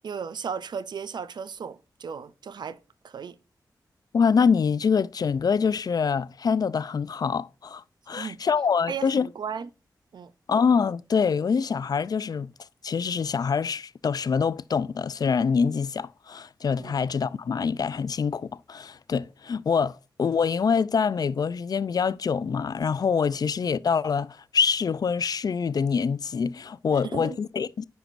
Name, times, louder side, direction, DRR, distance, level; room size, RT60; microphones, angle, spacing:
voice 1, 0.0-2.8 3.0-3.4 8.1-8.4 8.9-9.7 10.1-10.3 16.8-17.0 26.9-27.4, right 6 dB, 75° right, 0.5 m, -35 dB
voice 2, 4.1-9.3 10.5-12.5 12.8-27.8, left 6 dB, 60° left, 0.4 m, -25 dB
9.0 x 4.6 x 2.5 m
cardioid pair, 70°, 8 cm